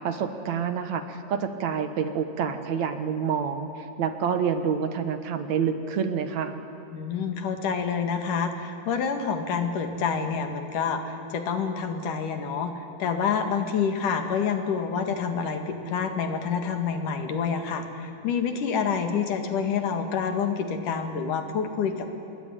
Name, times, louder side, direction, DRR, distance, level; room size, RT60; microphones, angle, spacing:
voice 1, 0.0-3.7 4.0-6.5, right 7 dB, 65° right, 9 dB, 2.7 m, -27 dB
voice 2, 6.9-22.1, left 6 dB, 85° left, 6 dB, 3.6 m, -28 dB
26.5 x 21.5 x 10.0 m, 2.9 s
omnidirectional pair, 3.6 m